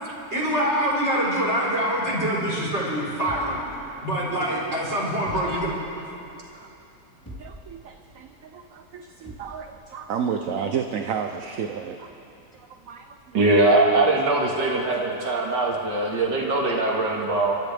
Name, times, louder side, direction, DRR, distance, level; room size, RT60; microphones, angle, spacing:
voice 1, 0.3-3.6 4.0-5.7, equal, 40° right, -7 dB, 4.5 m, -25 dB
sound 1, 3.3-4.4 5.3-6.1 7.3-7.9 9.3-9.7, left 1 dB, 10° left, 3.4 m, -43 dB
voice 2, 6.3-6.7 7.3-12.1 12.5-13.2 14.8-14.9 15.2-15.5, right 7 dB, 60° right, 5 dB, 1.0 m, -32 dB
voice 3, 13.3-17.6, right 2 dB, 85° right, -2 dB, 2.4 m, -21 dB
29.5 x 13.5 x 3.4 m, 2.7 s
omnidirectional pair, 1.8 m